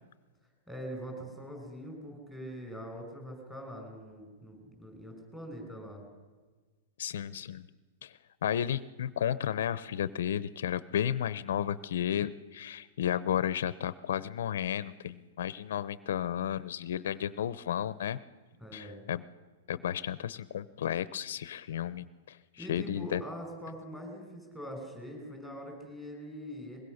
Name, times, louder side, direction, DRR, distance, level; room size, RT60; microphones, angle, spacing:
voice 1, 0.7-6.0 18.6-19.1 22.6-26.8, equal, 5° right, 3 dB, 5.8 m, -43 dB
voice 2, 7.0-7.6 8.0-8.1 8.4-18.2 18.7-19.2 19.7-23.2, left 10 dB, 75° left, 16 dB, 0.8 m, -33 dB
23.5 x 21.0 x 6.6 m, 1.4 s
supercardioid pair, 160°, 0 cm